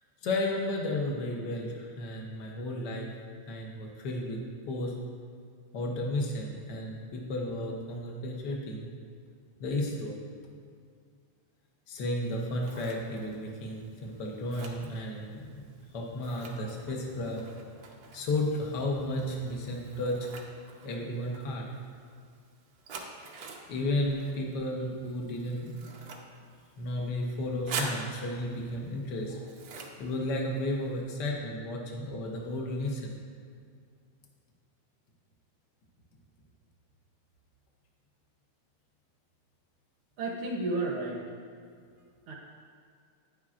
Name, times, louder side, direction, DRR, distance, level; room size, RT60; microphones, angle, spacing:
voice 1, 0.2-3.1 3.5-4.4 4.7-4.9 5.7-8.9 9.6-10.2 11.9-15.5 15.9-17.4 18.1-20.3 20.8-21.6 23.7-25.9 26.8-29.5 30.0-33.2, left 1 dB, 75° left, -1 dB, 0.9 m, -33 dB
Scissors, 12.2-31.0, right 4 dB, 85° right, 1.1 m, -46 dB
voice 2, 40.2-41.2 42.3-42.4, right 2 dB, 70° right, -1 dB, 1.3 m, -32 dB
10.0 x 9.8 x 2.5 m, 2.2 s
omnidirectional pair, 3.3 m